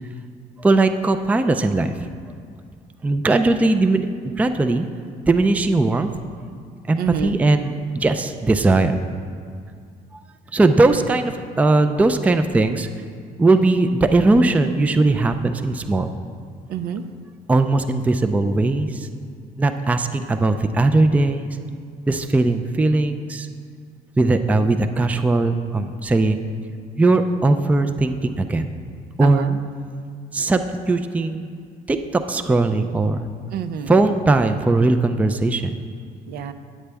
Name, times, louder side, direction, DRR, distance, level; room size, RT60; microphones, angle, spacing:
voice 1, 0.6-1.9 3.0-4.1 4.4-4.9 5.3-6.1 6.9-9.0 10.5-12.9 13.4-16.1 17.5-19.1 19.6-21.6 22.1-23.5 24.2-26.4 27.0-28.7 29.2-29.5 30.3-31.5 31.9-33.3 33.9-35.8, right 2 dB, 10° right, 8 dB, 0.3 m, -19 dB
voice 2, 7.0-7.4 16.7-17.0 29.2-29.6 33.5-33.9 34.4-34.5 36.3-36.5, right 8 dB, 70° right, 10 dB, 0.5 m, -28 dB
8.6 x 8.1 x 3.4 m, 2.2 s
cardioid pair, 110°, 17 cm